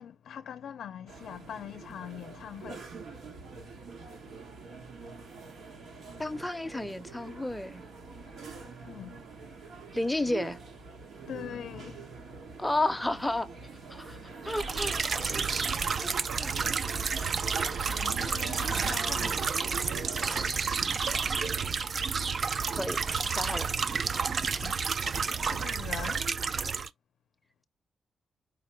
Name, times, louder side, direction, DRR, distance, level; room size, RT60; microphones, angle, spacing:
voice 1, 0.0-2.9 8.8-9.2 11.3-12.1 14.6-15.5 15.7-16.0 17.7-19.4 24.6-24.8 25.3-26.3, left 9 dB, 80° left, 0.4 m, -43 dB
sound 1, 1.1-20.5, right 4 dB, 80° right, 1.4 m, -44 dB
voice 2, 6.2-7.9 9.9-10.6 12.6-13.5 13.9-15.4 16.0-16.1 16.4-16.5 22.8-23.0 23.2-23.7, left 2 dB, 5° left, 0.6 m, -32 dB
sound 2, 14.5-26.9, right 5 dB, 45° right, 0.3 m, -30 dB
5.0 x 2.1 x 4.4 m
wide cardioid pair, 135°, 0 cm